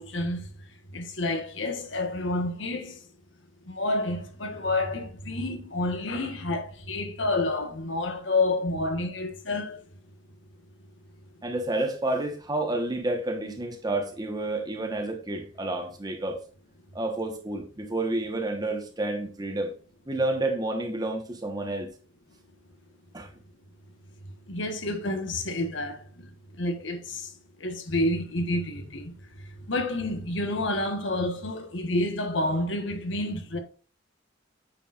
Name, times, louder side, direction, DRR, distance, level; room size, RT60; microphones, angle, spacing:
voice 1, 0.0-3.1 3.7-9.8 24.5-33.6, left 2 dB, 80° left, 1.5 m, -29 dB
voice 2, 11.4-16.4 16.9-19.7 20.1-21.9 23.1-23.3, right 2 dB, 20° right, 1.3 m, -30 dB
9.0 x 7.0 x 2.5 m
head